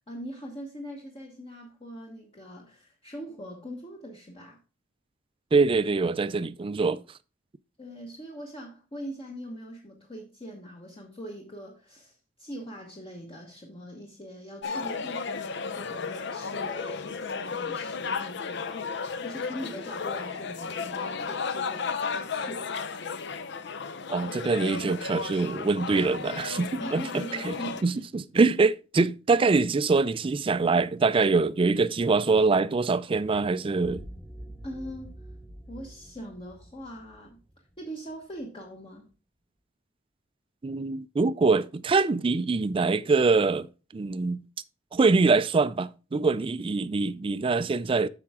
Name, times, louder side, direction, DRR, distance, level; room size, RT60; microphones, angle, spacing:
voice 1, 0.0-4.6 7.8-22.7 26.8-27.8 34.6-35.1 35.7-37.4 37.8-39.1, equal, 30° left, 1.2 m, -41 dB
voice 2, 5.5-7.0 24.1-27.5 27.8-34.1 40.6-43.7 43.9-44.4 44.9-48.1, right 4 dB, 30° right, 0.4 m, -24 dB
sound 1, 14.6-27.8, left 5 dB, 65° left, 0.6 m, -34 dB
sound 2, 33.7-38.4, equal, 10° left, 1.1 m, -46 dB
8.6 x 5.9 x 3.6 m
head